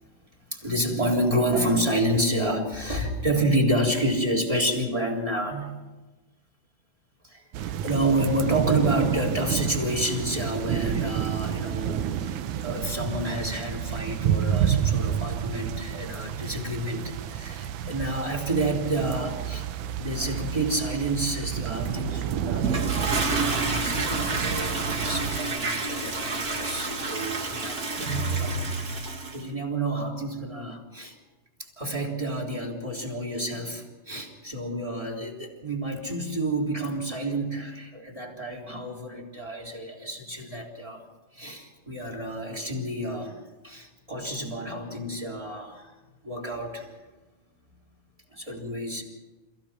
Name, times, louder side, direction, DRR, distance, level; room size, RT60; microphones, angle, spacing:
voice 1, 0.5-5.7 7.2-19.6 20.0-28.0 28.4-28.9 29.3-31.2 31.6-41.0 41.3-43.4 43.6-45.9 46.2-46.9 48.3-49.0, right 1 dB, 10° right, 0 dB, 3.1 m, -29 dB
sound 1, 7.5-25.4, right 9 dB, 70° right, 2.0 m, -30 dB
Toilet flush, 22.6-29.4, right 3 dB, 35° right, 1.5 m, -29 dB
28.5 x 16.5 x 5.9 m, 1.1 s
omnidirectional pair, 4.4 m